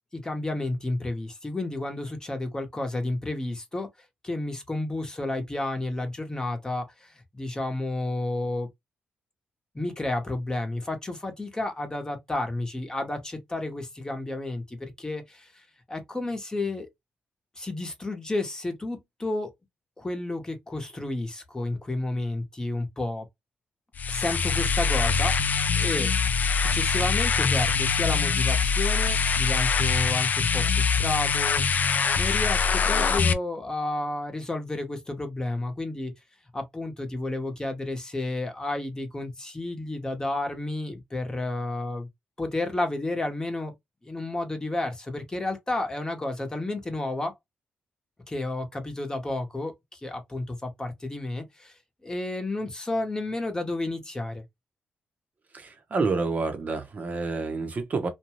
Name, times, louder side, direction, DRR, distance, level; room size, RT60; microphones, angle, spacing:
voice 1, 0.1-3.9 4.2-8.7 9.7-16.9 17.6-19.5 20.0-23.3 24.1-26.1 26.6-31.6 31.9-36.1 36.5-42.1 42.4-43.7 44.0-47.3 48.3-51.7 52.0-54.4, left 2 dB, 20° left, 0.9 m, -31 dB
sound 1, 23.9-33.3, left 5 dB, 50° left, 0.4 m, -24 dB
voice 2, 55.5-58.1, right 4 dB, 45° right, 0.8 m, -28 dB
2.6 x 2.3 x 3.0 m
cardioid pair, 75°, 4 cm